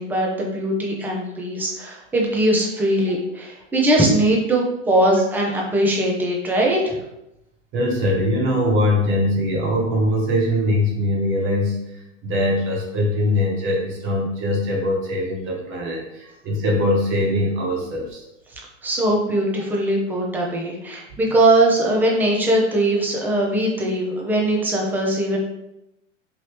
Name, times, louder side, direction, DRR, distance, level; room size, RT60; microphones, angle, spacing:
voice 1, 0.0-7.0 18.8-25.4, right 1 dB, 5° right, -2 dB, 0.3 m, -20 dB
voice 2, 7.7-11.8 12.2-18.2 21.1-21.2, left 1 dB, 35° right, -2 dB, 1.0 m, -22 dB
3.0 x 2.7 x 3.2 m, 0.87 s
hypercardioid pair, 120°, 37 cm